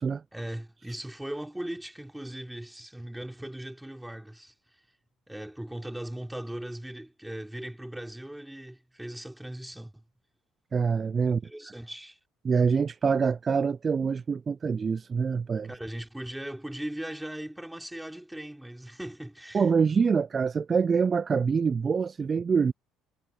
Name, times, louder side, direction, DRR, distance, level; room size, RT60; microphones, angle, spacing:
voice 1, 0.3-4.5 5.3-10.0 11.2-12.2 15.7-19.7, right 1 dB, 5° right, 4.3 m, -39 dB
voice 2, 10.7-11.4 12.4-15.7 19.5-22.7, right 5 dB, 35° right, 0.5 m, -25 dB
hypercardioid pair, 60°, 0 cm